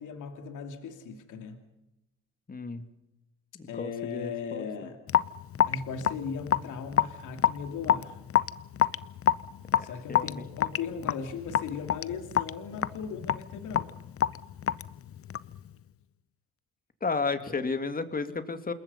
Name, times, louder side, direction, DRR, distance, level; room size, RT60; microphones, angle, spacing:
voice 1, 0.0-1.6 3.7-5.0 5.6-8.2 9.8-13.9, left 6 dB, 80° left, 6 dB, 2.7 m, -38 dB
voice 2, 2.5-2.9 3.5-4.7 9.7-10.4 17.0-18.7, left 4 dB, 30° left, 9 dB, 2.5 m, -33 dB
Raindrop / Drip, 5.1-15.6, left 10 dB, 50° left, 0.8 m, -28 dB
27.5 x 21.5 x 5.5 m, 0.92 s
cardioid pair, 90°, 30 cm